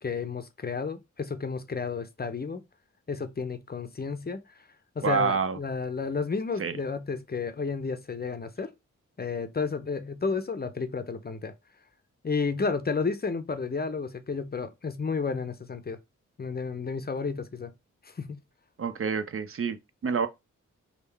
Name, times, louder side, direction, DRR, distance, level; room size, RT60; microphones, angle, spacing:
voice 1, 0.0-2.6 3.1-4.4 5.0-8.7 9.2-11.5 12.2-16.0 16.4-17.7 18.0-18.4, left 4 dB, 30° left, 0.6 m, -32 dB
voice 2, 5.0-5.6 6.6-6.8 18.8-19.8 20.0-20.3, right 5 dB, 45° right, 0.5 m, -27 dB
3.5 x 2.3 x 3.3 m
cardioid pair, 40°, 32 cm